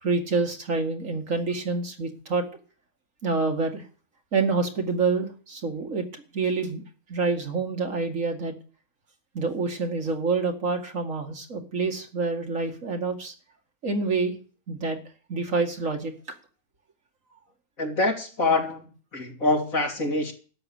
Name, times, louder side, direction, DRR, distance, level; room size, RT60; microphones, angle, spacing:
voice 1, 0.0-2.4 3.2-3.8 4.3-6.1 6.3-6.8 7.1-8.5 9.3-13.3 13.8-14.4 14.7-15.0 15.3-16.1, right 4 dB, 60° right, 4 dB, 2.4 m, -27 dB
voice 2, 17.8-20.3, left 2 dB, 70° left, 1 dB, 3.5 m, -25 dB
13.0 x 9.2 x 7.2 m, 0.39 s
omnidirectional pair, 1.5 m